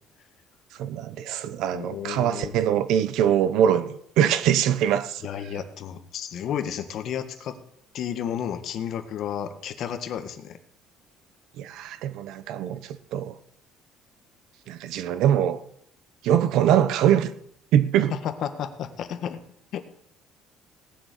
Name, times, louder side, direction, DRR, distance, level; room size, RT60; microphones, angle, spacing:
voice 1, 0.8-5.2 11.6-13.4 14.7-15.6 16.2-17.3 17.7-18.1, right 10 dB, 70° right, 1.2 m, -23 dB
voice 2, 1.7-2.5 5.2-7.6 7.9-10.6 18.2-19.4 19.7-19.8, left 9 dB, 50° left, 1.6 m, -32 dB
18.5 x 6.8 x 9.4 m
cardioid pair, 155°, 0 cm